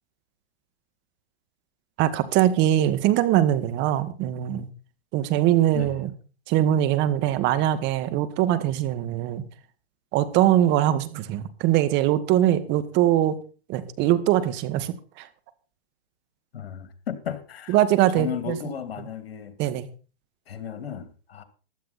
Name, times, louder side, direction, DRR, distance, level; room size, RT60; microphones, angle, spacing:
voice 1, 2.0-4.7 5.1-6.1 6.5-9.4 10.1-13.4 13.7-15.3 17.7-18.6 19.6-19.9, right 12 dB, 35° right, 1.8 m, -22 dB
voice 2, 16.5-17.8 18.1-19.6 20.5-21.4, left 8 dB, 75° left, 2.7 m, -34 dB
15.5 x 12.0 x 4.2 m
hypercardioid pair, 125°, 30 cm